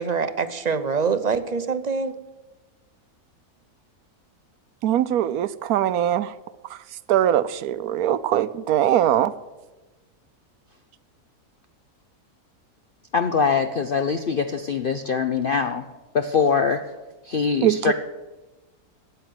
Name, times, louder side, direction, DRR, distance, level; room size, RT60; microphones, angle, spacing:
voice 1, 0.0-2.2, right 5 dB, 45° right, 12 dB, 0.5 m, -25 dB
voice 2, 4.8-6.3 7.1-9.3 17.6-17.9, right 11 dB, 75° right, 15 dB, 1.1 m, -21 dB
voice 3, 13.1-15.8 16.1-16.8 17.3-17.9, left 5 dB, 50° left, 8 dB, 0.7 m, -23 dB
13.5 x 8.9 x 9.4 m, 1.1 s
omnidirectional pair, 1.6 m